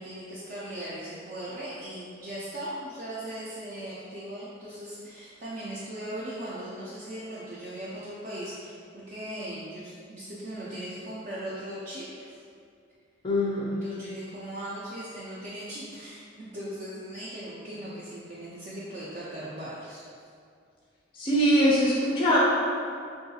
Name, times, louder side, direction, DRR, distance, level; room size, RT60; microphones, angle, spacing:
voice 1, 0.0-12.3 13.8-20.0, right 1 dB, 40° right, -9 dB, 0.4 m, -38 dB
voice 2, 13.2-13.8 21.1-22.4, equal, 25° left, -5 dB, 0.3 m, -22 dB
3.7 x 2.3 x 2.7 m, 2.3 s
head